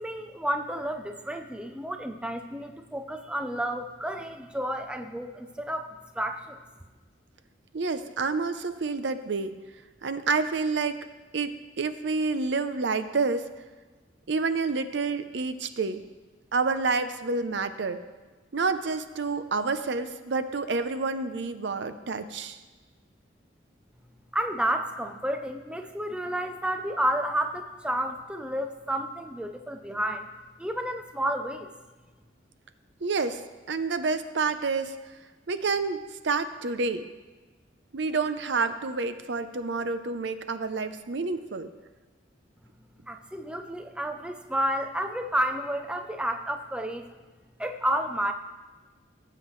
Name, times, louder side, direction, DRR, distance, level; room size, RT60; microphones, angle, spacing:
voice 1, 0.0-5.9 6.2-6.6 24.3-30.3 30.6-31.7 43.1-47.1 47.6-48.3, right 1 dB, 5° right, 6 dB, 0.5 m, -31 dB
voice 2, 7.7-9.5 10.0-11.0 11.3-13.5 14.3-16.0 16.5-18.0 18.5-22.6 33.0-33.4 33.7-35.0 35.5-36.0 36.2-37.1 37.9-41.7, right 4 dB, 65° right, 10 dB, 0.6 m, -28 dB
18.0 x 7.8 x 3.2 m, 1.3 s
head